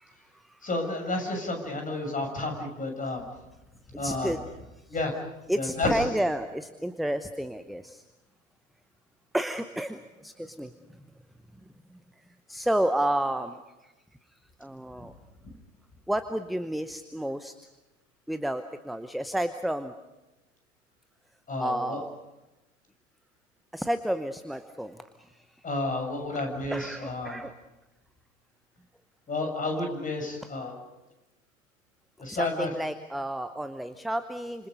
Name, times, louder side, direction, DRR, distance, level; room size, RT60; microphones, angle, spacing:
voice 1, 0.0-0.7 3.9-4.4 4.8-5.0 5.5-8.0 9.3-10.7 11.0-11.1 11.9-13.9 14.6-15.1 16.1-17.5 18.3-19.9 21.6-22.2 23.7-25.6 26.7-27.5 32.3-34.7, right 1 dB, ahead, 10 dB, 0.8 m, -31 dB
voice 2, 0.6-3.2 3.9-4.3 4.9-5.1 5.6-6.0 21.5-22.0 25.6-27.4 29.3-30.8 32.2-32.7, left 2 dB, 20° left, 3 dB, 7.1 m, -31 dB
30.0 x 27.0 x 5.3 m, 1.0 s
figure-of-eight pair, 80°, 40 cm